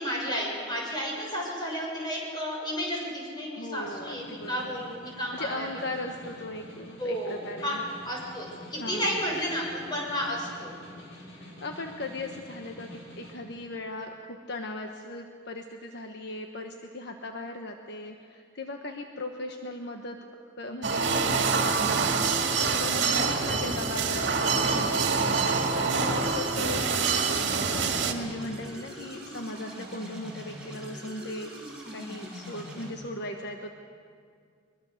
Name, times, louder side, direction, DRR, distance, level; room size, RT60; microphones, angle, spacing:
voice 1, 0.0-5.8 7.0-7.8 8.0-10.7, equal, 25° left, -2 dB, 6.8 m, -32 dB
voice 2, 3.5-4.7 5.3-7.8 8.8-9.2 11.3-20.2 20.6-27.5 28.0-31.5 31.9-33.7, left 2 dB, 60° left, 3 dB, 1.3 m, -38 dB
Snare drum, 3.6-13.4, left 1 dB, 85° left, 5.8 m, -48 dB
sound 1, 20.8-28.1, right 4 dB, 60° right, 2.1 m, -26 dB
sound 2, 23.6-32.9, equal, 5° right, 6.2 m, -43 dB
23.0 x 23.0 x 6.7 m, 2.3 s
head